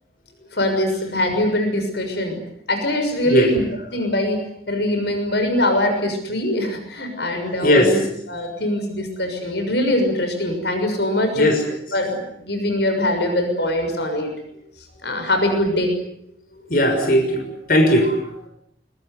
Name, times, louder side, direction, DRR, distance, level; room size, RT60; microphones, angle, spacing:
voice 1, 0.5-2.4 2.7-3.6 3.9-8.0 8.3-11.5 11.9-14.3 15.0-15.9, left 1 dB, 70° left, 5 dB, 6.5 m, -22 dB
voice 2, 7.0-8.0 11.3-11.6 16.5-18.5, equal, 50° left, 3 dB, 6.2 m, -19 dB
24.5 x 22.5 x 9.6 m, 0.73 s
head